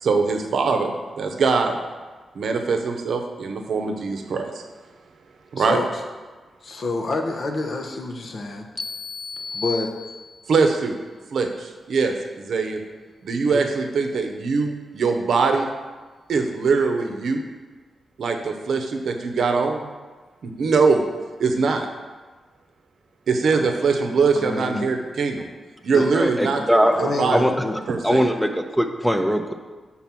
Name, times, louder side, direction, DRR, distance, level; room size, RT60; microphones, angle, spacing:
voice 1, 0.0-1.8 2.3-4.6 5.5-5.8 10.5-11.0 11.3-12.8 13.2-15.7 16.3-17.4 18.2-19.9 20.4-21.0 21.4-21.9 23.3-25.4 25.8-27.4 27.9-28.2, right 4 dB, 75° right, 5 dB, 0.7 m, -22 dB
voice 2, 5.6-6.0 6.6-8.7 9.5-9.9 13.5-13.6 23.5-23.7 24.4-25.0 25.9-26.1 26.9-27.8 28.1-28.2, left 2 dB, 60° left, 3 dB, 0.9 m, -28 dB
sound 1, 8.8-10.6, left 4 dB, 40° left, 0.4 m, -34 dB
voice 3, 26.1-26.9 27.3-27.5 28.0-29.5, equal, 5° left, 6 dB, 0.7 m, -20 dB
5.9 x 4.1 x 5.7 m, 1.3 s
cardioid pair, 50°, 0 cm